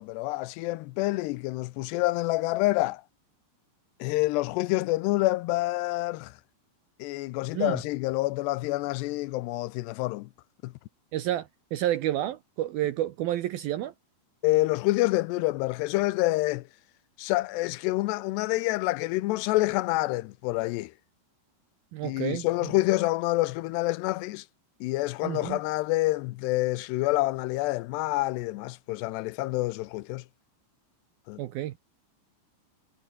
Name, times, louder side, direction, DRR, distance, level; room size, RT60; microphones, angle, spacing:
voice 1, 0.0-3.0 4.0-6.4 7.0-10.3 10.6-10.7 14.4-16.7 17.2-20.9 22.0-24.5 24.8-30.2 31.3-31.4, left 19 dB, 80° left, 2.7 m, -27 dB
voice 2, 11.1-13.9 21.9-22.7 25.2-25.6 31.4-31.7, right 13 dB, 70° right, 2.4 m, -30 dB
omnidirectional pair, 5.2 m